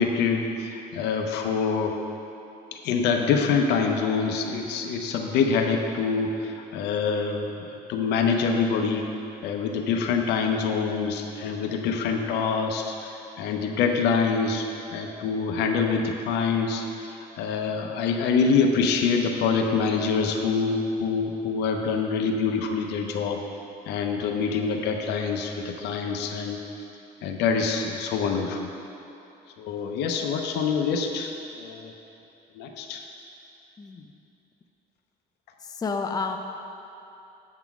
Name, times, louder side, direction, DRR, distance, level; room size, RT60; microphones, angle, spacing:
voice 1, 0.0-2.0 2.7-7.5 7.9-9.1 9.4-16.8 17.4-23.4 23.9-26.6 27.2-28.7 29.6-31.9 32.6-33.0, left 5 dB, 85° left, 3 dB, 0.7 m, -25 dB
voice 2, 33.8-34.1 35.6-36.4, left 4 dB, 20° left, 4 dB, 0.5 m, -30 dB
8.2 x 3.8 x 6.0 m, 2.8 s
cardioid pair, 110°, 17 cm